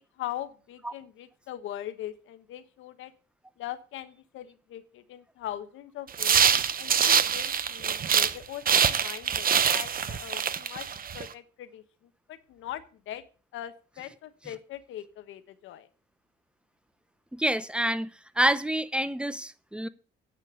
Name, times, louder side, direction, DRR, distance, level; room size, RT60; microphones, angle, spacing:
voice 1, 0.0-3.1 3.6-6.4 6.8-10.9 11.1-13.2 13.5-15.9, left 12 dB, 85° left, 1.2 m, -41 dB
sound 1, 6.1-8.4 8.6-11.2, right 7 dB, 45° right, 0.9 m, -24 dB
voice 2, 17.3-18.1 18.4-19.9, right 1 dB, 5° right, 0.8 m, -27 dB
9.9 x 6.9 x 6.9 m
cardioid pair, 90°, 20 cm